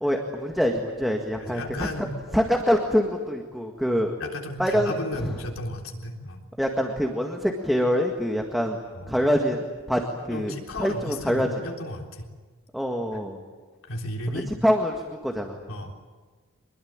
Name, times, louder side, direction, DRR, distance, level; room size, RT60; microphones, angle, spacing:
voice 1, 0.0-1.9 2.3-4.2 4.6-5.3 6.6-8.8 9.1-11.5 12.7-13.4 14.5-15.6, equal, ahead, 2 dB, 1.8 m, -25 dB
voice 2, 1.4-2.2 4.2-6.4 8.9-9.2 10.3-12.3 13.8-14.5 15.7-16.1, left 1 dB, 70° left, 1 dB, 3.6 m, -34 dB
25.0 x 21.5 x 8.9 m, 1.4 s
head